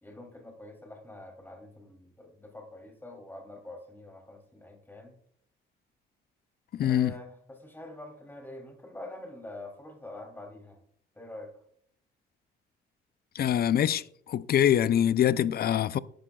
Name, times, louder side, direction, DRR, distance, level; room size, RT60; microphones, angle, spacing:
voice 1, 0.0-5.2 6.8-10.8 11.1-11.5, left 2 dB, 10° left, 2.9 m, -45 dB
voice 2, 6.7-7.1 13.4-14.0 14.3-16.0, left 10 dB, 50° left, 0.5 m, -24 dB
11.5 x 10.0 x 2.3 m
cardioid pair, 90°, 20 cm